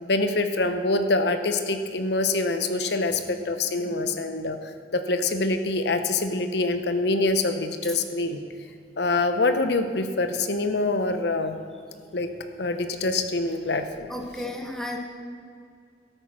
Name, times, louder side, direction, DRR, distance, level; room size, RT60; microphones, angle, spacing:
voice 1, 0.0-4.6 4.9-8.4 9.0-11.6 12.1-12.3 12.6-14.1, left 2 dB, 70° left, 8 dB, 0.8 m, -25 dB
voice 2, 3.8-4.2 7.8-8.0 14.1-15.0, left 1 dB, 5° left, 2 dB, 1.2 m, -35 dB
12.5 x 9.0 x 6.2 m, 2.3 s
head